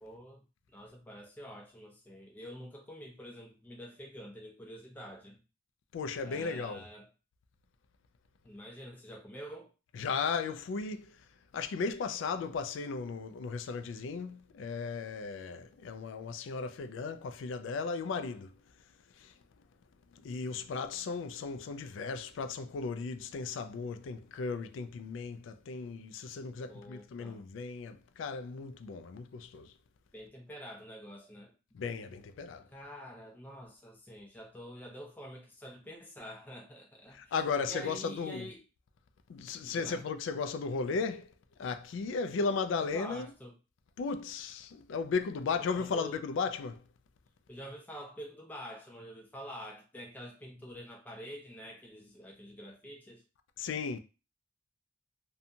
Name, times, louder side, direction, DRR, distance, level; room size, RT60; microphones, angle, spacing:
voice 1, 0.0-0.4 0.7-5.4 6.2-7.1 8.4-9.7 26.7-27.4 30.1-31.5 32.7-37.3 37.6-38.6 39.6-40.0 42.8-43.5 45.5-46.2 47.5-53.2, equal, 10° left, 0.5 m, -47 dB
voice 2, 5.9-6.8 10.0-11.1 11.5-18.5 19.2-19.3 20.2-29.7 31.7-32.7 37.1-38.5 39.3-41.3 41.6-43.3 44.0-46.8 53.6-54.0, left 4 dB, 70° left, 0.3 m, -36 dB
2.7 x 2.2 x 2.6 m
head